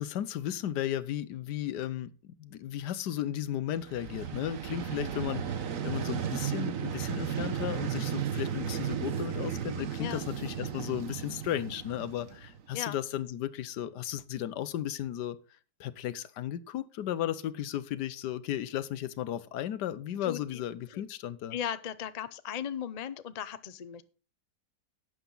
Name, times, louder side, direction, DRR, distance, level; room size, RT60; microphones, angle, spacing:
voice 1, 0.0-15.4 15.8-21.6, left 11 dB, 80° left, 15 dB, 1.3 m, -35 dB
Vehicle, 3.8-12.7, right 8 dB, 55° right, 1.3 m, -34 dB
voice 2, 20.2-20.6 20.9-21.0 21.5-24.0, left 9 dB, 60° left, 13 dB, 0.4 m, -37 dB
11.5 x 8.1 x 3.9 m, 0.36 s
omnidirectional pair, 1.8 m